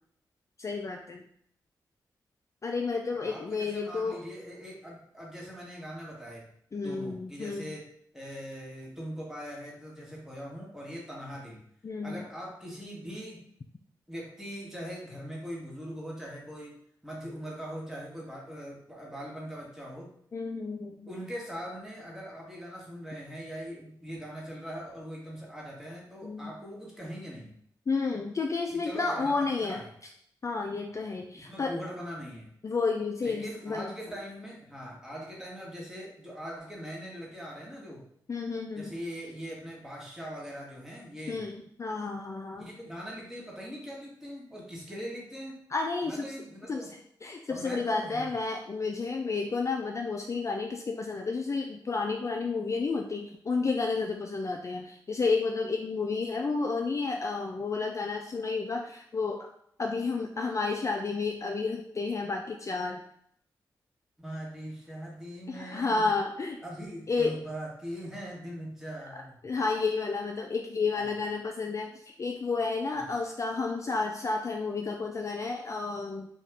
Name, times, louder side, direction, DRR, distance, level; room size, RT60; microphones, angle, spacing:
voice 1, 0.6-1.2 2.6-4.2 6.7-7.7 11.8-12.2 20.3-21.1 26.2-26.6 27.9-29.8 30.4-31.7 32.6-33.9 38.3-38.9 41.3-42.7 45.7-46.3 46.7-46.8 47.2-59.5 59.8-63.0 65.5-66.6 67.1-67.4 69.4-76.3, left 4 dB, 40° left, 2 dB, 0.3 m, -31 dB
voice 2, 3.1-6.5 6.8-11.6 12.0-13.4 14.1-20.1 21.1-27.5 28.7-29.4 29.6-29.9 30.9-31.0 31.4-32.5 33.2-38.0 38.8-41.4 42.6-45.6 46.0-46.9 47.5-48.3 64.2-66.1 66.6-69.4 72.9-73.1, equal, 5° right, -4 dB, 1.3 m, -41 dB
2.7 x 2.4 x 3.4 m, 0.68 s
cardioid pair, 45°, 8 cm